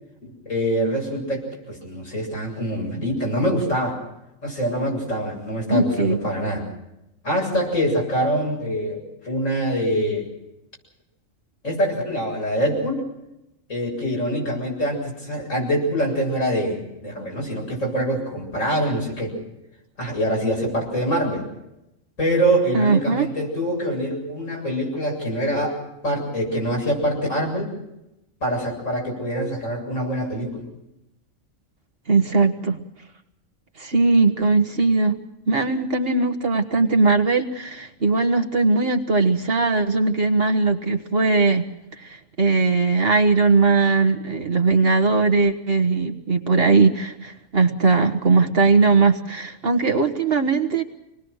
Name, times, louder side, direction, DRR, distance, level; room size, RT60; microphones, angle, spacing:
voice 1, 0.2-4.0 4.4-6.7 7.2-10.3 11.6-13.0 13.7-19.4 20.0-21.5 22.2-25.8 26.0-27.8 28.4-30.7, equal, 70° left, -1 dB, 8.0 m, -24 dB
voice 2, 5.7-6.2 22.7-23.3 32.1-32.8 33.8-35.2 35.5-41.6 42.0-50.8, right 3 dB, 50° right, 4 dB, 1.6 m, -19 dB
26.5 x 20.0 x 6.4 m, 0.88 s
omnidirectional pair, 1.4 m